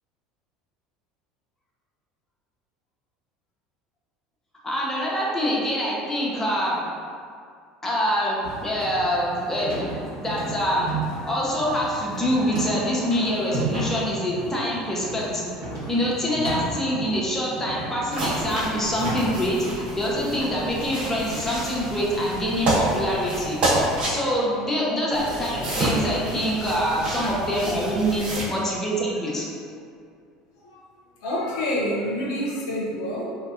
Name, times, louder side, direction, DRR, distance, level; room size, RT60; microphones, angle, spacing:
voice 1, 4.6-6.9 7.8-9.9 10.2-10.9 11.2-15.5 15.9-23.6 24.1-29.5, equal, 15° left, -5 dB, 0.6 m, -25 dB
sound 1, 8.4-19.8, right 2 dB, 80° right, 0.9 m, -34 dB
sound 2, 18.1-24.1 25.1-28.4, right 1 dB, 50° right, 0.9 m, -29 dB
voice 2, 26.9-27.3 30.6-30.8 31.2-33.4, equal, 80° left, -4 dB, 0.5 m, -28 dB
2.5 x 2.0 x 2.5 m, 2.3 s
hypercardioid pair, 80°, 2 cm